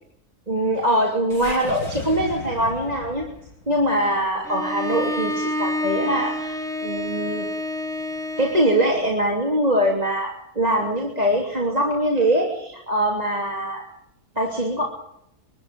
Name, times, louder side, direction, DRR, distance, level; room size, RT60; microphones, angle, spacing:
voice 1, 0.5-3.2 3.7-7.4 8.4-13.8 14.3-14.8, right 1 dB, 25° right, -1 dB, 3.3 m, -22 dB
sound 1, 1.3-5.6, left 4 dB, 85° left, 3.4 m, -38 dB
Bowed string instrument, 4.5-8.9, left 1 dB, ahead, 1.2 m, -28 dB
23.5 x 13.5 x 8.9 m, 0.77 s
omnidirectional pair, 1.6 m